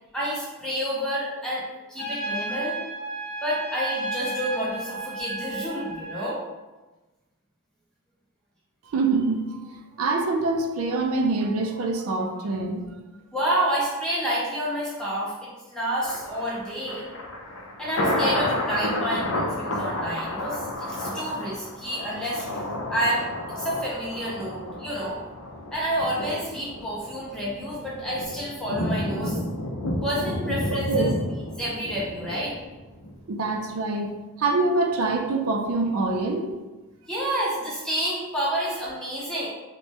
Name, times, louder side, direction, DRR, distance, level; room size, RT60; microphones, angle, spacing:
voice 1, 0.1-2.8 3.4-6.4 13.3-17.1 17.8-22.5 22.9-25.2 25.7-29.4 30.0-31.1 31.6-32.6 37.1-39.5, equal, 5° left, -7 dB, 0.5 m, -29 dB
Trumpet, 2.0-6.3, right 2 dB, 40° left, 0.8 m, -33 dB
voice 2, 8.8-12.9 30.9-31.1 33.3-36.5, right 3 dB, 70° right, 3 dB, 0.4 m, -25 dB
Thunder, 16.0-33.2 33.5-33.6, left 1 dB, 70° left, 0.5 m, -31 dB
3.2 x 2.1 x 2.7 m, 1.1 s
head